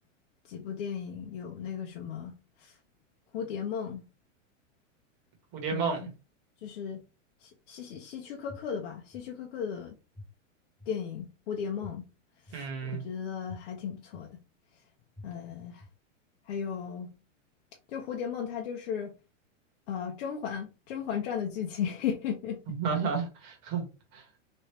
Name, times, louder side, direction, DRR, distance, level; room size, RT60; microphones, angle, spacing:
voice 1, 0.4-2.8 3.3-4.1 5.7-6.1 6.6-7.0 7.4-9.9 10.9-12.1 12.5-14.4 15.2-15.8 16.4-17.1 17.9-19.1 19.9-22.8, left 7 dB, 55° left, 0.7 m, -36 dB
voice 2, 5.5-6.0 12.5-13.0 22.7-23.8 24.1-24.2, right 6 dB, 40° right, 1.4 m, -31 dB
sound 1, 8.5-8.6 9.1-9.2 10.1-10.2 10.8-10.9 11.8-11.9 12.5-12.6 13.5-13.6 14.1-14.2 15.1-15.2 15.8-15.9, left 2 dB, 5° left, 0.6 m, -45 dB
3.1 x 2.7 x 3.1 m
supercardioid pair, 150°, 39 cm